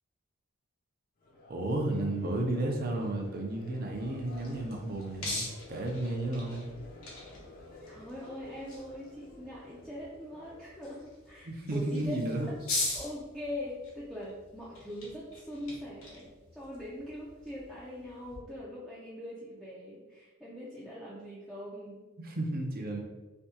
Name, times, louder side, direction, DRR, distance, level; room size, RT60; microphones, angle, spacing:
Crowd, 1.2-11.4, left 2 dB, 45° left, 0.6 m, -52 dB
voice 1, 1.5-6.7 11.4-12.5 22.2-23.0, right 1 dB, 45° right, 1 dB, 0.6 m, -33 dB
sound 1, 3.9-18.4, left 2 dB, 85° left, 1.1 m, -42 dB
voice 2, 7.9-12.6 12.9-22.1, left 1 dB, ahead, -9 dB, 0.4 m, -42 dB
3.4 x 2.7 x 2.7 m, 1.2 s
head